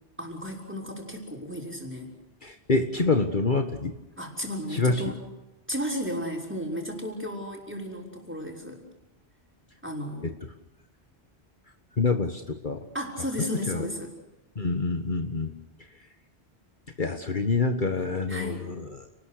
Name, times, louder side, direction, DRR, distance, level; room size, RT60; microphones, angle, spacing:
voice 1, 0.2-2.1 4.2-5.2 5.7-8.8 9.8-10.3 12.9-14.1 18.3-18.7, equal, 10° right, 0 dB, 5.9 m, -34 dB
voice 2, 2.4-3.9 4.7-5.1 12.0-12.8 13.7-13.9 14.5-15.5 17.0-18.9, left 3 dB, 50° left, 6 dB, 1.7 m, -26 dB
30.0 x 20.5 x 6.6 m, 0.99 s
omnidirectional pair, 1.1 m